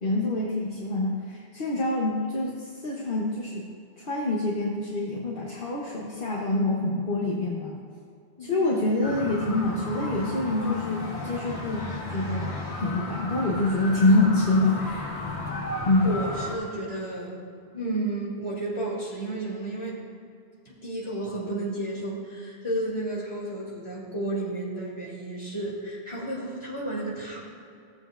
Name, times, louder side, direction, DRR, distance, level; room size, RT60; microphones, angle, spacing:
voice 1, 0.0-3.6 4.0-7.8 8.4-15.2 15.9-16.1, left 2 dB, 55° left, -3 dB, 1.2 m, -26 dB
voice 2, 8.4-8.8 16.0-17.3 17.7-20.0 20.6-27.4, right 2 dB, 25° left, -6 dB, 2.6 m, -32 dB
sound 1, 9.0-16.5, left 2 dB, 85° left, 1.7 m, -34 dB
16.5 x 7.6 x 2.5 m, 2.5 s
omnidirectional pair, 1.1 m